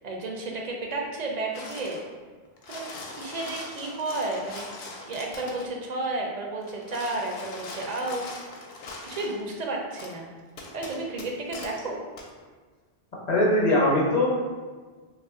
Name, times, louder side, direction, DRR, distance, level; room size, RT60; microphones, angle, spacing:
voice 1, 0.0-2.0 2.7-2.8 3.1-4.6 5.0-8.2 9.0-10.3 10.7-12.0, right 2 dB, 55° right, 0 dB, 0.5 m, -32 dB
sound 1, 1.5-2.1 2.5-5.7 6.6-9.4 10.0-10.1 10.6-11.8 12.2-12.3, left 2 dB, 75° left, 0.8 m, -41 dB
voice 2, 13.3-14.3, left 1 dB, 45° left, -4 dB, 0.8 m, -21 dB
2.8 x 2.4 x 3.5 m, 1.4 s
omnidirectional pair, 1.1 m